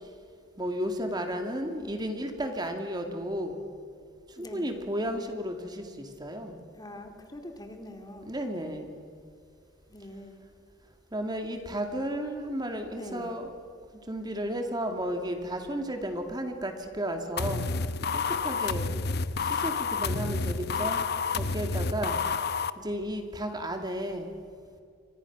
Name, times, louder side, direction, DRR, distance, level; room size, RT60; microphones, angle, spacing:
voice 1, 0.6-3.6 4.4-6.6 8.3-9.1 11.1-13.5 14.1-17.6 18.4-18.9 19.5-21.0 21.4-22.2 22.8-24.3, equal, 20° right, 5 dB, 2.3 m, -33 dB
voice 2, 4.4-4.7 6.7-8.3 9.9-10.4 12.9-13.3 18.9-19.0, left 1 dB, 20° left, 5 dB, 2.3 m, -43 dB
sound 1, 17.4-22.7, left 4 dB, 55° left, 0.9 m, -29 dB
28.5 x 25.0 x 6.1 m, 2.3 s
head